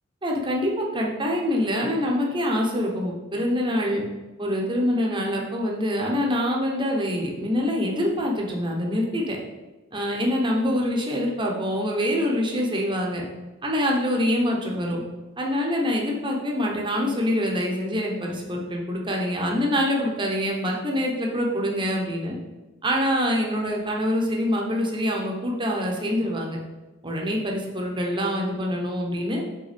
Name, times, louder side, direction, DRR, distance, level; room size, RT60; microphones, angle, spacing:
voice 1, 0.2-4.0 4.4-9.4 9.9-13.3 13.6-15.0 15.4-22.4 22.8-26.6 27.0-29.4, equal, 25° right, -1 dB, 1.0 m, -25 dB
5.4 x 4.0 x 5.2 m, 1.1 s
head